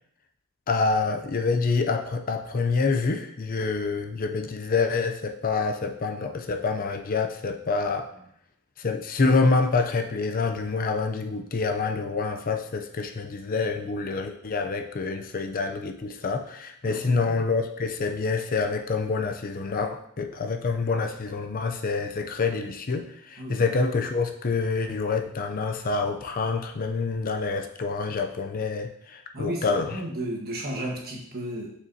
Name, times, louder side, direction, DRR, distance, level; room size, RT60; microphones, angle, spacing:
voice 1, 0.7-8.1 8.8-30.0, left 4 dB, 40° left, 5 dB, 0.5 m, -27 dB
voice 2, 16.9-17.4 23.4-23.6 29.3-31.7, right 1 dB, 45° right, 0 dB, 1.4 m, -33 dB
6.5 x 6.2 x 2.8 m, 0.69 s
head